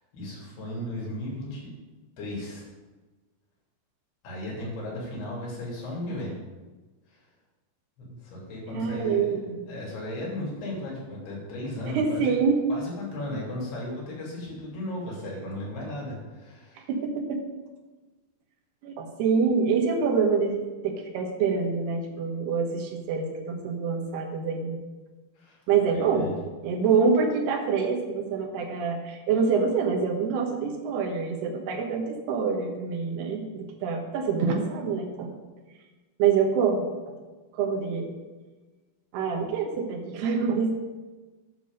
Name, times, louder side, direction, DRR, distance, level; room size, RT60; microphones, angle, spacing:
voice 1, 0.1-1.7 2.2-2.7 4.2-6.3 8.0-9.3 9.7-12.3 12.7-16.8 25.4-25.6 25.9-26.4, left 1 dB, 80° left, -3 dB, 4.9 m, -35 dB
voice 2, 8.7-9.6 11.9-12.6 16.9-17.4 18.8-24.8 25.7-26.3 26.6-35.4 36.2-36.9 37.5-38.1 39.1-40.7, right 5 dB, 85° right, 2 dB, 3.3 m, -26 dB
9.8 x 6.9 x 5.4 m, 1.2 s
omnidirectional pair, 4.5 m